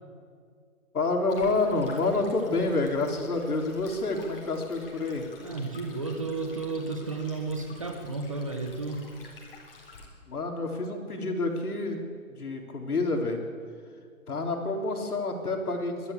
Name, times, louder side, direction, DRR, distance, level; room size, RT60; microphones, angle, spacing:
voice 1, 0.9-5.3 10.3-12.0 12.3-13.4 14.3-16.1, left 3 dB, 75° left, 3 dB, 3.8 m, -28 dB
Stream, 1.3-10.1, left 3 dB, 40° left, 3.7 m, -50 dB
voice 2, 5.4-9.1, right 3 dB, 20° right, 5 dB, 1.0 m, -33 dB
25.5 x 12.5 x 8.3 m, 2.2 s
hypercardioid pair, 175°, 45 cm